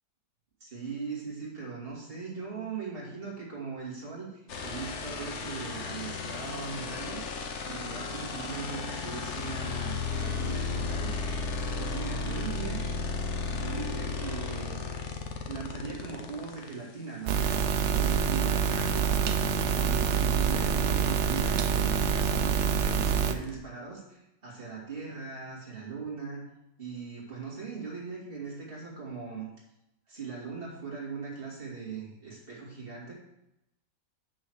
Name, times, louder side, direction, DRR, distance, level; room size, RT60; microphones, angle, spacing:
voice 1, 0.6-11.1 11.8-12.8 13.4-14.8 15.5-19.1 19.7-26.4 26.8-29.5 30.1-33.1, right 5 dB, 30° right, -5 dB, 2.5 m, -39 dB
sound 1, 4.5-16.7 18.8-18.9 19.2-23.6, left 4 dB, 50° left, 1.0 m, -35 dB
sound 2, 17.3-23.3, right 7 dB, 85° right, 0.6 m, -26 dB
6.4 x 6.3 x 6.3 m, 0.88 s
omnidirectional pair, 1.9 m